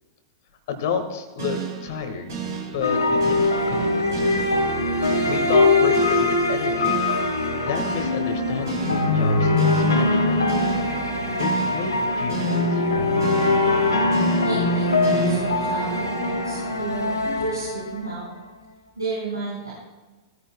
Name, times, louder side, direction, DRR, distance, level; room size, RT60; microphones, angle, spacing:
voice 1, 0.7-2.2 2.7-3.9 4.2-4.4 5.3-7.0 7.6-10.4 11.4-13.0, left 5 dB, 55° left, 5 dB, 1.7 m, -30 dB
sound 1, 1.4-17.7, right 5 dB, 65° right, 4.4 m, -33 dB
sound 2, 2.8-18.3, left 2 dB, 80° left, 2.3 m, -22 dB
voice 2, 14.4-18.4 18.9-19.7, right 2 dB, 85° right, -6 dB, 4.7 m, -32 dB
19.0 x 14.0 x 2.3 m, 1.2 s
figure-of-eight pair, 100°, 2 cm